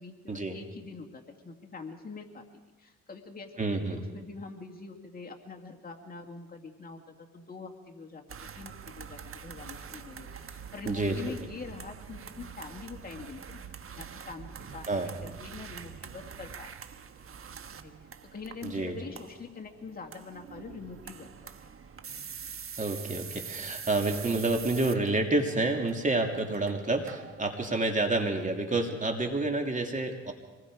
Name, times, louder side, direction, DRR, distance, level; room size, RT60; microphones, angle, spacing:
voice 1, 0.0-2.5 2.8-3.6 3.9-13.6 13.9-16.7 17.8-17.9 18.2-21.7 29.2-29.3, left 4 dB, 30° left, 2 dB, 2.2 m, -44 dB
voice 2, 3.6-4.0 10.8-11.2 14.9-15.1 18.6-19.0 22.8-30.3, right 2 dB, 25° right, 3 dB, 3.0 m, -29 dB
sound 1, 8.3-27.5, right 7 dB, 45° right, 1.4 m, -45 dB
25.5 x 20.5 x 5.0 m, 1.3 s
cardioid pair, 90°, 30 cm